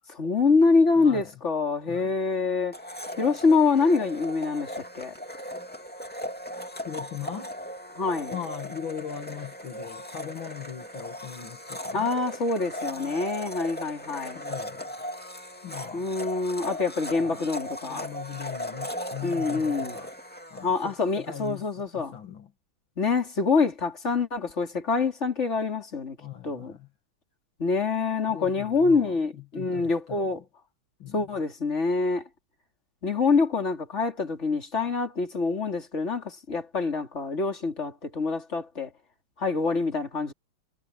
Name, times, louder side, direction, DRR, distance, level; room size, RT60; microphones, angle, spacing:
voice 1, 0.1-2.8 3.2-5.1 7.9-8.3 11.9-14.4 15.9-18.1 19.2-20.0 20.6-22.1 23.0-26.2 26.4-26.8 27.6-30.4 31.1-32.2 33.0-38.9 39.4-40.3, left 4 dB, 30° left, 3.6 m, -25 dB
voice 2, 1.0-1.3 1.9-2.1 6.9-7.5 8.3-12.1 14.3-14.8 15.6-16.1 17.2-17.4 17.8-20.1 20.5-22.5 26.2-26.9 28.3-30.3 31.0-31.2, left 8 dB, 70° left, 2.6 m, -39 dB
Domestic sounds home sounds, 2.7-21.5, equal, 5° left, 2.1 m, -38 dB
omnidirectional pair, 2.3 m